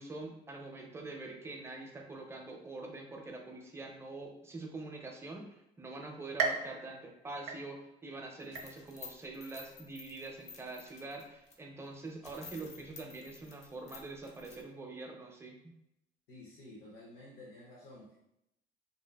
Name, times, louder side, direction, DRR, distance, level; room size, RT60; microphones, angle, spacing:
voice 1, 0.0-15.6, right 2 dB, 15° right, 1 dB, 0.5 m, -45 dB
sound 1, 6.4-8.1 8.6-9.1 9.6-9.7 10.7-10.8, right 5 dB, 85° right, 0.4 m, -37 dB
sound 2, 8.4-11.6 11.9-12.0 12.2-14.6, left 5 dB, 40° left, 0.5 m, -52 dB
voice 2, 16.3-18.2, left 1 dB, 90° left, -5 dB, 0.7 m, -52 dB
2.6 x 2.3 x 2.2 m, 0.82 s
cardioid pair, 110°, 17 cm